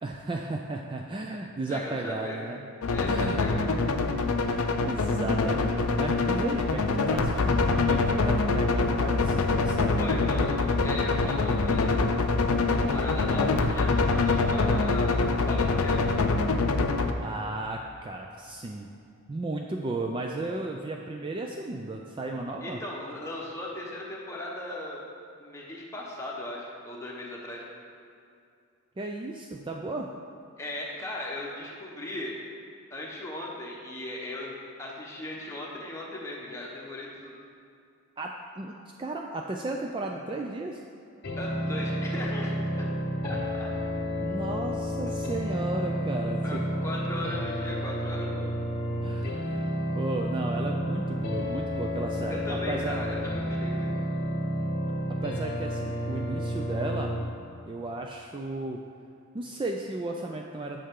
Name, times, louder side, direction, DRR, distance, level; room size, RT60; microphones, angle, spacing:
voice 1, 0.0-2.6 3.0-3.4 4.4-10.0 17.2-18.9 19.3-22.8 29.0-30.1 38.2-40.8 44.2-46.7 49.0-49.6 49.9-53.0 55.2-57.1 57.7-58.8 59.3-60.8, right 2 dB, 25° right, 1 dB, 0.3 m, -34 dB
voice 2, 1.7-2.4 2.9-3.8 9.9-10.5 10.8-12.2 12.7-16.0 22.6-25.0 25.4-27.6 30.6-32.4 32.9-37.3 41.4-42.9 43.2-43.7 46.4-48.5 52.3-53.9, left 1 dB, 15° left, -3 dB, 1.1 m, -38 dB
sound 1, 2.8-17.1, left 3 dB, 80° left, 0.5 m, -25 dB
sound 2, 41.2-57.2, equal, 50° left, 0.9 m, -31 dB
8.5 x 6.6 x 3.7 m, 2.5 s
head